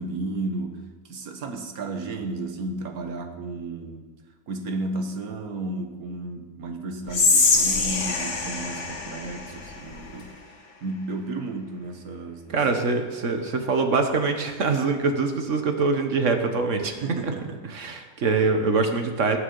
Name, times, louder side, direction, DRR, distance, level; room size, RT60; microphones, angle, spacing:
voice 1, 0.0-4.1 4.5-10.3 10.8-12.6 16.8-17.7, right 2 dB, 80° right, 5 dB, 1.7 m, -33 dB
Whispering, 7.1-10.3, left 3 dB, 55° left, 1.8 m, -24 dB
voice 2, 12.5-16.9 17.7-19.4, right 4 dB, 55° right, 5 dB, 1.6 m, -24 dB
19.5 x 6.8 x 5.5 m, 1.3 s
omnidirectional pair, 1.5 m